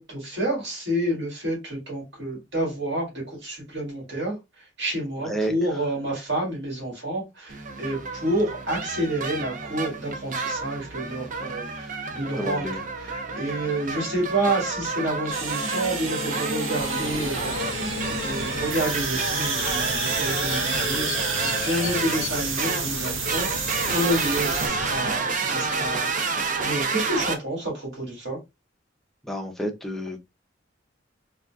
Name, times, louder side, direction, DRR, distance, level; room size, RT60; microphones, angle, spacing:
voice 1, 0.0-12.7 13.0-28.4, right 1 dB, 65° right, 1.9 m, -29 dB
voice 2, 5.2-5.5 12.3-12.8 29.2-30.2, right 1 dB, ahead, 0.5 m, -30 dB
sound 1, 7.5-27.4, right 4 dB, 45° right, 0.6 m, -30 dB
sound 2, 15.3-24.7, right 4 dB, 90° right, 0.7 m, -30 dB
sound 3, 16.8-25.1, left 6 dB, 80° left, 0.4 m, -36 dB
3.7 x 2.3 x 2.3 m
head